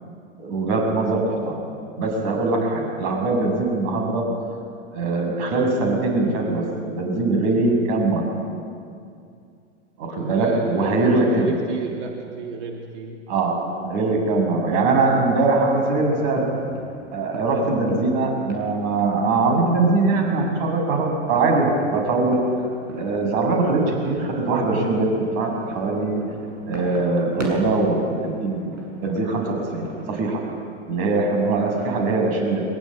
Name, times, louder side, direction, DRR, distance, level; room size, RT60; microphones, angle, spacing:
voice 1, 0.4-1.6 2.0-4.2 4.9-8.2 10.0-11.5 13.3-13.6 13.8-16.4 17.1-22.4 22.9-26.2 26.7-28.7 29.0-30.4 30.9-32.6, right 3 dB, 45° right, 2 dB, 7.2 m, -22 dB
voice 2, 10.1-13.2, right 5 dB, 70° right, 1 dB, 2.9 m, -33 dB
sound 1, 16.0-30.5, right 2 dB, 90° right, 7.3 m, -40 dB
22.5 x 22.0 x 9.0 m, 2.4 s
hypercardioid pair, 115°, 36 cm